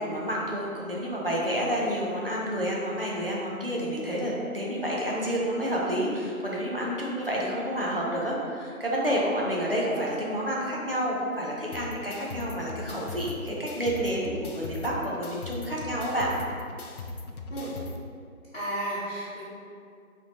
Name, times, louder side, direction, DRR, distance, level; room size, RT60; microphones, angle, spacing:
voice 1, 0.0-16.3, equal, 40° right, -5 dB, 0.7 m, -29 dB
sound 1, 11.7-18.0, left 3 dB, 85° left, 0.6 m, -39 dB
voice 2, 18.5-19.4, right 1 dB, 45° left, -12 dB, 1.0 m, -33 dB
4.7 x 3.4 x 2.7 m, 2.3 s
figure-of-eight pair, 165°, 43 cm